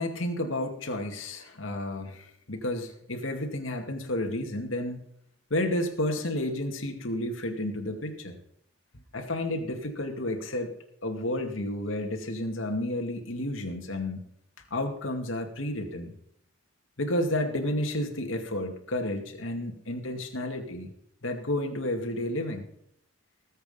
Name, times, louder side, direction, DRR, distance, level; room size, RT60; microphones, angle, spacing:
voice 1, 0.0-5.0 5.5-8.4 9.1-10.7 11.0-14.2 14.7-16.1 17.0-20.9 21.2-22.6, left 1 dB, 85° left, 3 dB, 2.2 m, -31 dB
19.5 x 8.1 x 5.6 m, 0.71 s
head